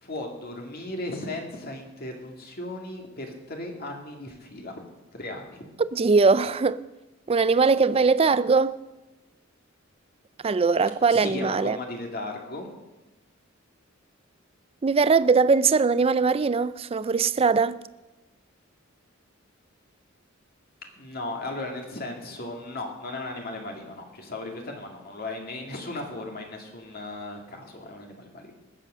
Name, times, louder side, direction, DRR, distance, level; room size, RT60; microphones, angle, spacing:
voice 1, 0.0-4.8 5.1-5.6 11.1-12.7 21.0-28.6, left 2 dB, 50° left, 2.3 m, -36 dB
voice 2, 5.8-6.8 7.3-8.8 10.4-11.8 14.8-17.8, right 4 dB, 30° right, 0.4 m, -21 dB
20.0 x 7.8 x 6.2 m
head